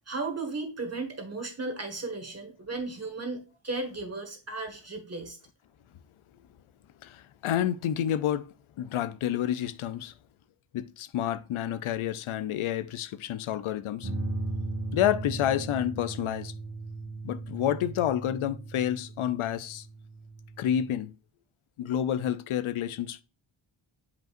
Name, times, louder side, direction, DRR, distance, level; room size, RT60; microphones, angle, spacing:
voice 1, 0.1-5.4, right 3 dB, 30° right, 1.7 m, -35 dB
voice 2, 7.0-8.5 8.8-10.1 10.7-14.1 14.9-16.5 17.2-19.9 20.6-21.1 21.8-23.2, left 10 dB, 80° left, 0.6 m, -29 dB
sound 1, 14.0-20.9, right 2 dB, 60° right, 1.8 m, -37 dB
7.6 x 5.2 x 2.5 m
cardioid pair, 75°, 48 cm